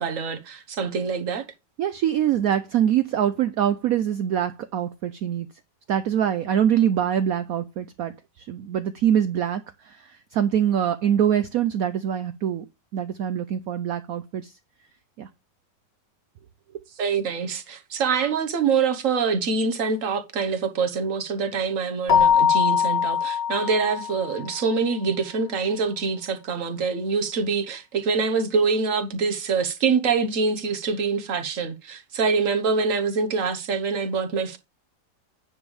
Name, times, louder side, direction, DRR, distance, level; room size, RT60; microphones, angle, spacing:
voice 1, 0.0-1.5 17.0-34.6, right 5 dB, 50° right, 1.4 m, -25 dB
voice 2, 1.8-5.5 5.9-12.7 12.9-14.5 15.2-15.3, right 9 dB, 70° right, 0.9 m, -24 dB
Keyboard (musical), 22.1-24.5, left 8 dB, 40° left, 1.2 m, -21 dB
9.8 x 3.4 x 7.0 m
omnidirectional pair, 1.9 m